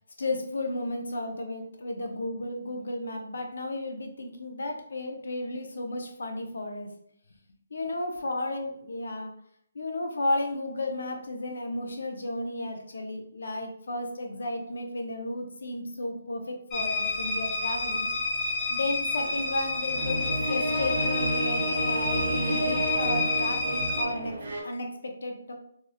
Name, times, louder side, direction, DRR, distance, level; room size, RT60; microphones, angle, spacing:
voice 1, 0.2-6.9 7.7-9.3 9.7-18.1 18.7-24.4 24.6-25.5, left 2 dB, 65° left, 3 dB, 0.5 m, -33 dB
sound 1, 16.7-24.0, left 2 dB, 10° left, 0.4 m, -29 dB
sound 2, 19.2-24.6, right 1 dB, 45° right, 0.5 m, -31 dB
2.7 x 2.0 x 2.5 m, 0.68 s
hypercardioid pair, 180°, 0 cm